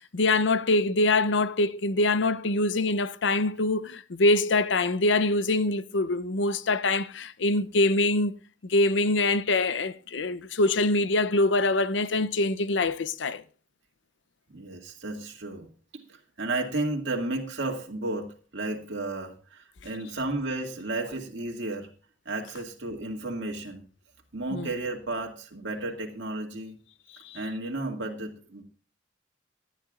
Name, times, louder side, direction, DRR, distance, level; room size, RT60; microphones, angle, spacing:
voice 1, 0.1-8.3 8.7-13.4 24.5-24.7 27.2-27.4, left 2 dB, 75° left, 0.7 m, -24 dB
voice 2, 14.5-15.7 15.9-21.9 22.3-23.8 24.3-26.8 27.3-28.6, right 2 dB, 70° right, 2.1 m, -33 dB
18.0 x 10.5 x 2.5 m
head